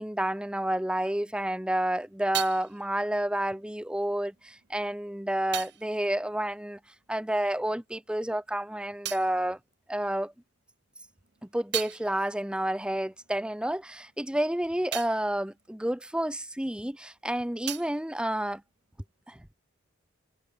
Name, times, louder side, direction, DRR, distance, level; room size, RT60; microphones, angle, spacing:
voice 1, 0.0-6.8 7.1-9.6 9.9-10.3 11.5-18.6 19.3-19.4, right 1 dB, 5° right, 0.7 m, -30 dB
sound 1, 1.6-7.5 7.8-10.5 10.9-16.9 17.2-19.2, right 13 dB, 60° right, 1.1 m, -42 dB
head